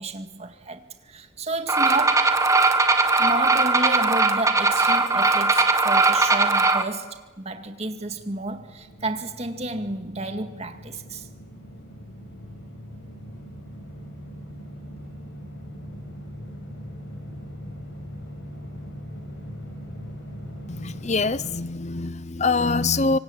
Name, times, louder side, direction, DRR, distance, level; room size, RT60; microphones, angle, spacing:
voice 1, 0.0-2.4 3.2-11.3, right 2 dB, 35° right, 2.1 m, -31 dB
sound 1, 1.7-6.8, right 3 dB, 15° right, 1.6 m, -19 dB
sound 2, 7.6-21.6, equal, 65° left, 7.6 m, -40 dB
voice 2, 20.7-23.2, left 3 dB, 35° left, 0.8 m, -24 dB
25.5 x 25.0 x 8.8 m
head